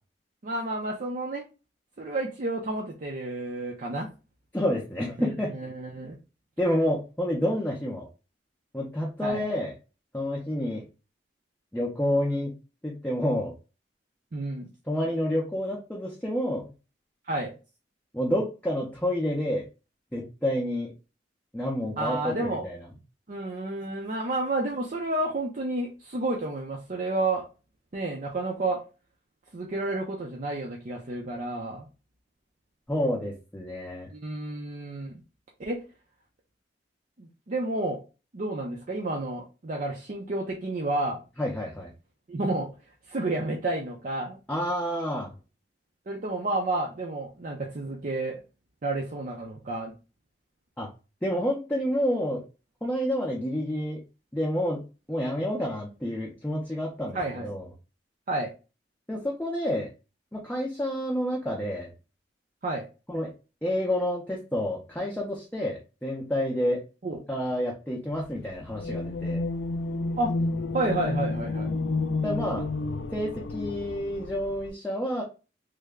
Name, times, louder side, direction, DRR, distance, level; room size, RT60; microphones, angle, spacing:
voice 1, 0.4-1.4 2.0-4.1 5.2-6.2 9.2-9.4 14.3-14.7 17.3-17.5 22.0-22.6 23.3-27.4 27.9-28.8 29.5-31.8 34.1-35.2 35.6-35.8 37.2-38.0 38.3-41.2 42.3-42.7 43.1-44.4 46.1-48.4 48.8-49.9 57.1-57.5 58.3-58.5 62.6-62.9 67.0-67.2 70.2-70.3 70.7-71.7, right 2 dB, 45° right, -1 dB, 0.6 m, -30 dB
voice 2, 4.5-5.5 6.6-8.1 8.7-9.7 10.1-10.8 11.7-12.5 12.8-13.5 14.9-16.7 18.1-19.6 20.1-20.9 21.5-22.8 32.9-34.1 41.4-41.9 44.5-45.3 50.8-50.9 51.2-52.4 52.8-54.0 54.3-54.8 55.1-57.6 59.1-59.9 60.3-61.9 63.1-63.3 63.6-66.8 67.3-69.4 72.2-72.6 73.1-75.2, equal, 10° left, -3 dB, 0.5 m, -29 dB
sound 1, 68.7-74.7, left 3 dB, 85° left, 0.4 m, -30 dB
3.2 x 2.1 x 3.5 m, 0.31 s
head